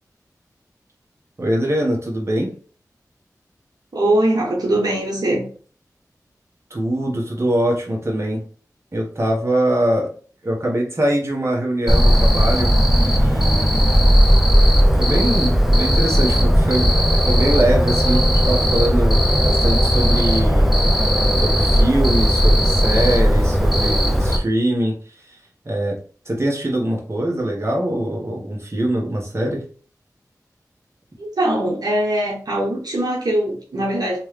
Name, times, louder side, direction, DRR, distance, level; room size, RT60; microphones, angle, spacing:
voice 1, 1.4-2.5 6.7-8.4 8.9-10.1 10.4-14.1 14.9-16.9 17.2-20.7 21.4-24.9 25.6-26.0 26.2-29.6, right 1 dB, 40° right, -2 dB, 1.4 m, -22 dB
voice 2, 3.9-5.5 31.2-34.2, right 1 dB, 75° right, -3 dB, 1.1 m, -21 dB
Cricket, 11.9-24.4, equal, 5° right, 0.8 m, -16 dB
3.3 x 3.2 x 3.3 m, 0.42 s
cardioid pair, 45°, 7 cm